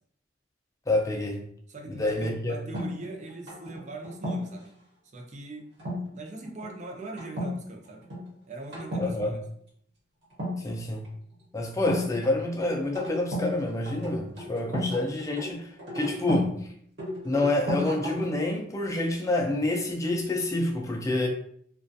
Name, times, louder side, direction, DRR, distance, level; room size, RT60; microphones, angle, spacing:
voice 1, 0.9-1.4 1.9-2.6 9.0-9.4 10.6-11.1 11.5-16.5 17.2-21.3, left 2 dB, 20° left, 0.4 m, -28 dB
voice 2, 1.7-4.7 5.1-5.7 6.1-8.1 8.5-9.4, right 2 dB, 40° right, 0.4 m, -41 dB
sound 1, 2.7-4.6 5.8-6.1 6.4-6.7 7.2-7.5 7.8-8.2 8.7-9.1 10.3-11.1 11.9-13.5 13.8-16.5 17.0-18.4, left 1 dB, 75° right, 1.0 m, -33 dB
2.3 x 2.2 x 2.6 m
head